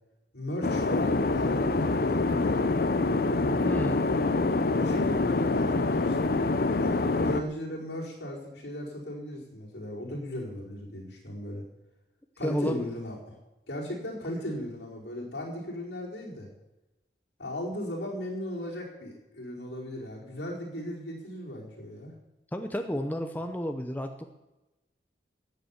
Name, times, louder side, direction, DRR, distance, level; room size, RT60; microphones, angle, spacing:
voice 1, 0.3-2.6 4.7-6.3 6.8-11.6 12.4-13.4 13.7-16.5 17.4-22.1, left 1 dB, 70° left, -3 dB, 4.7 m, -36 dB
sound 1, 0.6-7.4, left 3 dB, 55° left, 0.7 m, -26 dB
voice 2, 3.6-4.1 12.4-12.9 22.5-24.2, equal, 10° left, 5 dB, 0.8 m, -32 dB
14.5 x 9.3 x 7.1 m, 1.0 s
head